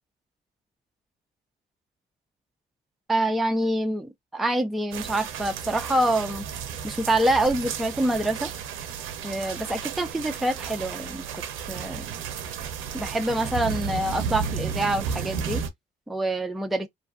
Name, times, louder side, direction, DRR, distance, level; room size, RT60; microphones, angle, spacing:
voice 1, 3.1-6.5 6.8-8.5 9.2-11.3 11.7-12.0 12.9-15.6 16.1-16.9, right 1 dB, ahead, 0.4 m, -26 dB
sound 1, 4.9-15.7, right 7 dB, 85° right, 0.5 m, -33 dB
2.5 x 2.3 x 2.4 m
cardioid pair, 90°, 20 cm